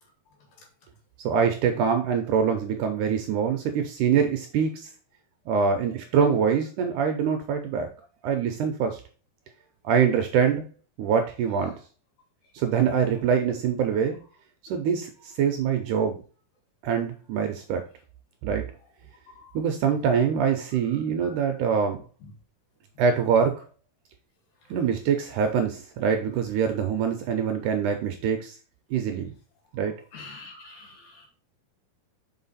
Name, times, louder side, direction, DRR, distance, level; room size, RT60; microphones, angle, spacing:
voice 1, 1.2-4.9 5.5-7.9 8.2-9.0 9.8-10.6 11.0-11.7 12.5-14.2 14.6-16.2 16.8-17.8 18.4-18.7 19.5-22.0 23.0-23.6 24.7-28.6 28.9-29.3 29.7-29.9, right 7 dB, 80° right, 5 dB, 1.9 m, -24 dB
voice 2, 21.2-21.6 22.2-22.3 30.1-31.3, left 3 dB, 75° left, 1 dB, 3.6 m, -46 dB
5.7 x 4.7 x 4.0 m, 0.37 s
omnidirectional pair, 4.1 m